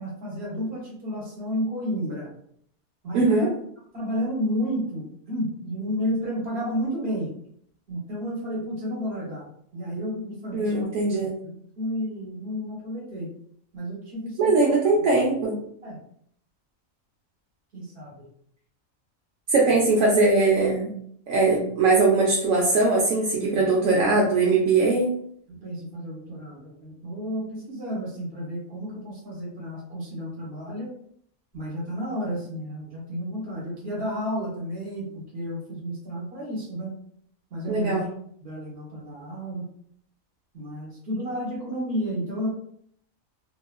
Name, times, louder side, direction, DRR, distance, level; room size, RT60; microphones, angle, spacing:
voice 1, 0.0-2.3 3.0-3.5 3.9-7.3 7.9-9.5 9.7-13.3 13.7-15.1 15.8-16.0 17.7-18.3 19.7-19.8 23.4-23.6 25.5-30.9 31.5-36.9 37.5-38.0 38.4-39.7 40.5-42.5, equal, 45° right, -4 dB, 1.2 m, -32 dB
voice 2, 3.1-3.5 10.5-11.3 14.4-15.6 19.5-20.9 21.3-25.1 37.7-38.1, right 3 dB, 75° right, -3 dB, 1.0 m, -21 dB
2.8 x 2.4 x 2.3 m, 0.65 s
omnidirectional pair, 1.4 m